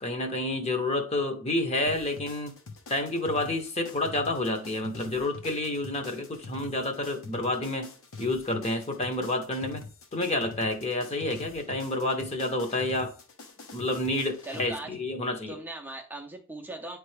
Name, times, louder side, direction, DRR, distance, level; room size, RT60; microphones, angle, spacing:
voice 1, 0.0-2.5 2.9-7.9 8.2-9.8 10.1-13.1 13.7-15.6, left 2 dB, 30° left, 0.8 m, -29 dB
sound 1, 1.9-14.7, left 3 dB, 70° left, 1.1 m, -45 dB
voice 2, 14.4-15.0 15.5-17.0, right 2 dB, 10° right, 0.5 m, -39 dB
9.5 x 3.3 x 3.2 m
head